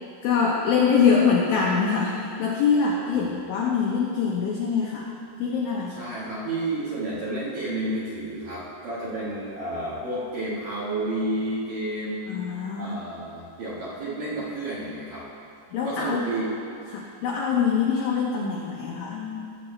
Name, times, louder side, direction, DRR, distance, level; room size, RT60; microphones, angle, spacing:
voice 1, 0.2-5.1 5.4-6.1 12.3-13.0 15.7-16.3 16.9-19.5, left 6 dB, 90° left, -2 dB, 2.0 m, -24 dB
voice 2, 5.9-12.5 12.8-15.3 15.8-16.6, right 1 dB, 60° right, -8 dB, 2.5 m, -31 dB
17.0 x 7.9 x 3.2 m, 2.5 s
omnidirectional pair, 5.3 m